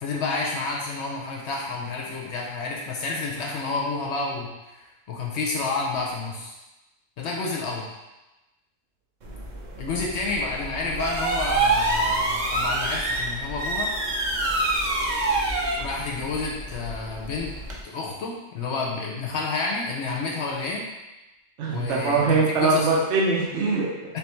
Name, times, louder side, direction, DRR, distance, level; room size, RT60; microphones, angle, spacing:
voice 1, 0.0-6.5 7.2-7.9 9.8-13.9 15.8-17.5 17.8-20.8 21.7-22.9 24.1-24.2, left 3 dB, 70° left, -2 dB, 0.8 m, -30 dB
Eslide updown fast, 9.2-17.8, right 2 dB, 50° right, 0.6 m, -27 dB
voice 2, 21.6-24.2, right 3 dB, 70° right, -3 dB, 0.9 m, -22 dB
3.4 x 3.3 x 3.0 m, 1.0 s
omnidirectional pair, 1.3 m